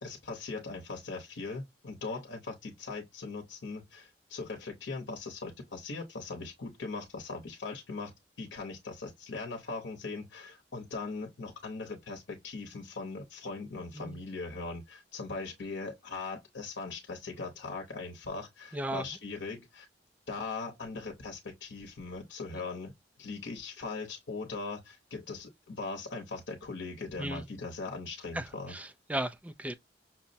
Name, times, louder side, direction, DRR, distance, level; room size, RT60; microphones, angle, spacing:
voice 1, 0.0-19.9 20.3-22.9 23.2-28.8, left 3 dB, 90° left, 0.8 m, -40 dB
voice 2, 18.7-19.1 22.5-22.6 27.2-27.4 28.3-29.7, right 1 dB, 10° right, 0.3 m, -36 dB
5.7 x 2.0 x 2.6 m
head